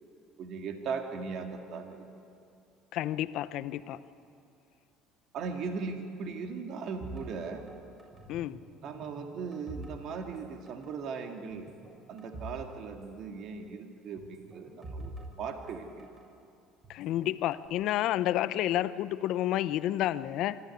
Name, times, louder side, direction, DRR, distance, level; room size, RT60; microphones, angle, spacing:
voice 1, 0.4-2.0 5.3-7.7 8.8-11.7 12.1-15.1 15.4-16.1, right 5 dB, 60° right, 4 dB, 2.2 m, -38 dB
voice 2, 2.9-4.0 8.3-8.6 16.9-20.6, left 13 dB, 65° left, 14 dB, 0.8 m, -30 dB
sound 1, 7.0-8.6 8.8-10.4 10.7-10.9 11.5-12.6 12.9-13.0 14.2-16.2 16.8-17.7, right 1 dB, 25° right, 7.5 m, -46 dB
24.5 x 14.0 x 9.6 m, 2.6 s
supercardioid pair, 85°, 0 cm